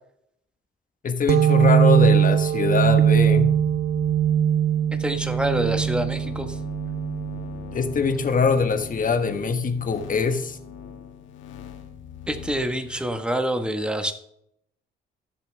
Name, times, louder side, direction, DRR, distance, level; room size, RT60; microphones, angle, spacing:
voice 1, 1.0-3.5 7.7-10.6, left 5 dB, 45° left, 1.4 m, -23 dB
sound 1, 1.3-8.6, right 9 dB, 55° right, 0.5 m, -21 dB
sound 2, 2.1-13.2, left 8 dB, 75° left, 1.9 m, -41 dB
voice 2, 5.0-6.6 12.3-14.1, right 1 dB, 5° right, 1.3 m, -26 dB
16.0 x 6.9 x 3.4 m
cardioid pair, 90°, 20 cm